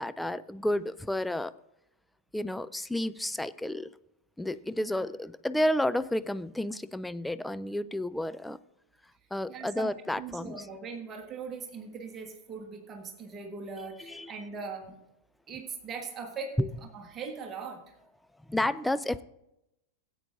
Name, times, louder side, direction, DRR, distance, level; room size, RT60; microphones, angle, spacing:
voice 1, 0.0-1.5 2.3-3.9 4.4-8.6 9.3-10.6 14.0-14.3 16.6-16.7 18.5-19.2, left 1 dB, 5° left, 14 dB, 0.4 m, -31 dB
voice 2, 9.5-15.0 15.5-16.6 16.9-18.0, right 5 dB, 25° right, 2 dB, 1.5 m, -40 dB
17.5 x 8.6 x 2.6 m, 0.86 s
figure-of-eight pair, 90°, 0 cm